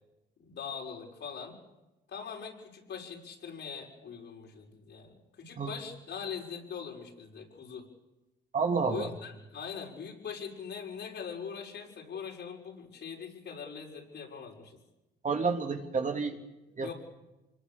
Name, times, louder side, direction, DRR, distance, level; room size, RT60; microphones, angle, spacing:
voice 1, 0.4-1.6 2.1-7.9 8.9-14.8 16.8-16.9, left 6 dB, 65° left, 0 dB, 6.3 m, -42 dB
voice 2, 8.5-9.1 15.2-16.4 16.8-16.9, right 4 dB, 40° right, 4 dB, 3.0 m, -29 dB
25.5 x 21.5 x 7.3 m, 1.0 s
cardioid pair, 90°, 20 cm